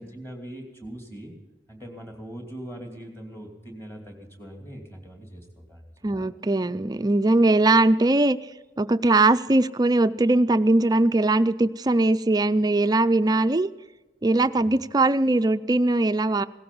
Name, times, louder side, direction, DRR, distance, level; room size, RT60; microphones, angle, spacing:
voice 1, 0.0-1.3 1.7-5.8 6.2-6.3 14.5-14.8, right 1 dB, 15° left, 3 dB, 2.7 m, -41 dB
voice 2, 6.0-8.4 8.8-13.7 14.2-16.4, right 2 dB, 20° right, 11 dB, 0.4 m, -20 dB
17.0 x 14.5 x 5.4 m, 1.1 s
head